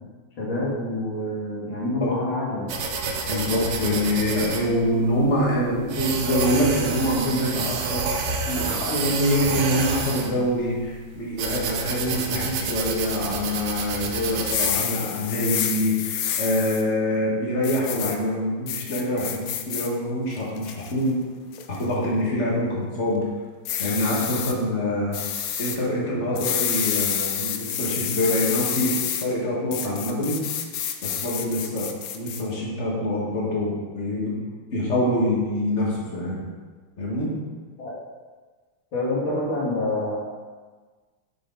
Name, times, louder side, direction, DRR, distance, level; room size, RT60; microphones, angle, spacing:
voice 1, 0.4-2.7 26.3-26.4 37.8-38.0 38.9-40.2, left 1 dB, 70° left, -7 dB, 2.8 m, -27 dB
sound 1, 2.7-14.7, right 4 dB, 65° right, 1.3 m, -29 dB
voice 2, 3.3-8.0 8.5-21.2 21.7-23.2 23.8-25.2 25.6-28.9 29.2-30.4 31.0-31.9 32.1-34.4 34.7-36.4 37.0-37.3, left 1 dB, 35° left, -5 dB, 1.8 m, -25 dB
sound 2, 14.4-16.8 17.6-18.2 18.7-19.9 20.3-20.9 21.5-21.8 23.6-24.5 25.1-25.8 26.4-29.3 29.7-32.4, left 9 dB, 85° left, 0.7 m, -28 dB
6.4 x 6.1 x 3.9 m, 1.4 s
omnidirectional pair, 2.2 m